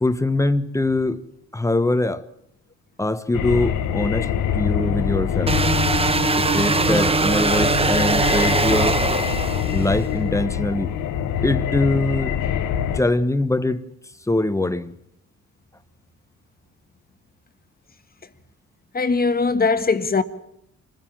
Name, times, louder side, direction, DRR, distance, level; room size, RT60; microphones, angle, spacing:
voice 1, 0.0-1.2 1.5-2.2 3.0-5.6 6.4-9.0 9.7-10.9 11.4-12.4 12.9-13.9 14.3-15.0, left 2 dB, 10° left, 1.1 m, -23 dB
sound 1, 3.3-13.0, left 9 dB, 85° left, 1.2 m, -25 dB
sound 2, 5.5-10.0, right 3 dB, 20° right, 1.1 m, -21 dB
voice 2, 18.9-20.2, left 4 dB, 30° left, 1.5 m, -20 dB
25.5 x 15.5 x 7.5 m
cardioid pair, 90°, 30 cm